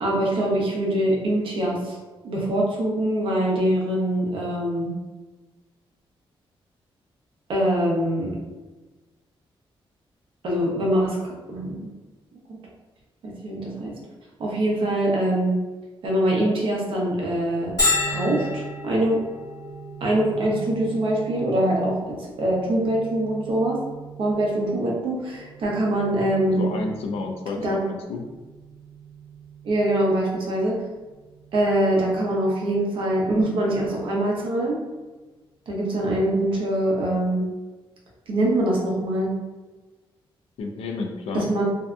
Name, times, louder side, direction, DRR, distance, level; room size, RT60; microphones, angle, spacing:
voice 1, 0.0-2.0 2.2-4.9 7.5-8.3 10.4-11.9 13.2-13.9 14.4-15.6 16.0-17.7 18.1-19.2 20.0-23.8 24.2-26.7 27.6-27.8 29.6-30.8 31.5-34.8 35.7-37.4 38.3-39.3 41.3-41.6, right 1 dB, 60° right, -3 dB, 0.7 m, -23 dB
Bell, 17.8-33.2, left 1 dB, 40° left, 0.8 m, -34 dB
voice 2, 26.5-28.2 40.6-41.5, left 3 dB, 90° left, 3 dB, 0.4 m, -31 dB
2.6 x 2.4 x 2.2 m, 1.2 s
wide cardioid pair, 175°, 10 cm